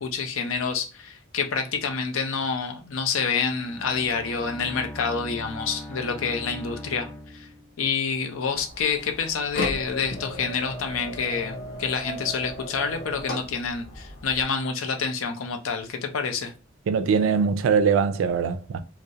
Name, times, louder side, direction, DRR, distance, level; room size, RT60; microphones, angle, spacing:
voice 1, 0.0-7.5 7.8-16.5, left 5 dB, 85° left, 0.5 m, -28 dB
Bowed string instrument, 3.3-8.0, left 1 dB, 5° left, 0.3 m, -40 dB
sound 1, 8.4-14.4, left 1 dB, 50° left, 0.7 m, -36 dB
voice 2, 16.9-18.8, right 6 dB, 75° right, 0.3 m, -22 dB
2.3 x 2.0 x 2.7 m
head